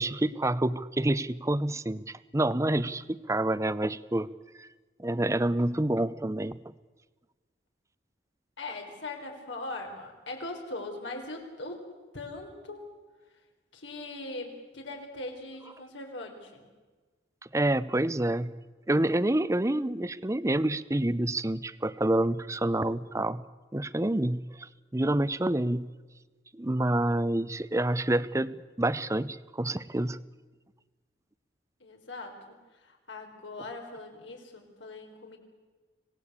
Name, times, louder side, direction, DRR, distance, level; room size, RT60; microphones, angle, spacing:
voice 1, 0.0-4.3 4.6-4.7 5.0-6.6 17.5-18.5 18.9-23.4 23.7-25.9 26.5-30.2, right 1 dB, 15° right, 16 dB, 0.6 m, -28 dB
voice 2, 8.6-11.9 12.1-12.9 13.7-16.7 31.8-35.4, left 2 dB, 85° left, 2 dB, 4.4 m, -40 dB
26.0 x 18.0 x 8.3 m, 1.3 s
head